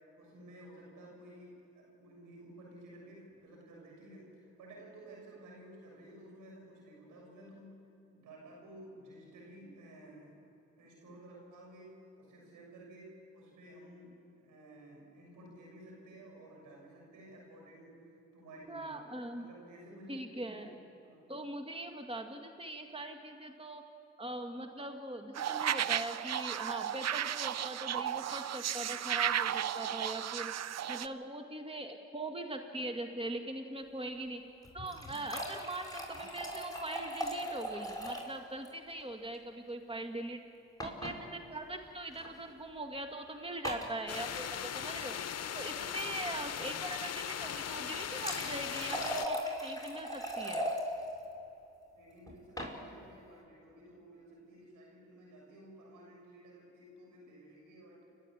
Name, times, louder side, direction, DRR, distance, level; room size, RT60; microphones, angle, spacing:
voice 1, 0.0-7.7 8.1-10.3 10.8-18.0 18.3-19.0 19.4-20.7 21.0-21.3 51.9-58.0, right 1 dB, 80° right, -2 dB, 7.1 m, -53 dB
voice 2, 18.7-19.5 20.1-20.8 21.3-23.8 24.2-30.5 30.9-34.4 34.7-40.4 40.8-45.2 45.5-50.6, right 1 dB, 20° right, 4 dB, 2.0 m, -41 dB
sound 1, 25.4-31.1, right 10 dB, 55° right, 0.7 m, -34 dB
sound 2, 34.6-38.4 38.6-38.7 39.0-39.1 40.8-41.2 42.1-42.3 43.6-43.9 47.7-50.8 52.3-52.7, equal, 10° left, 6.3 m, -38 dB
sound 3, 44.1-49.3, left 9 dB, 55° left, 0.9 m, -39 dB
29.0 x 11.5 x 8.8 m, 2.8 s
hypercardioid pair, 45°, 31 cm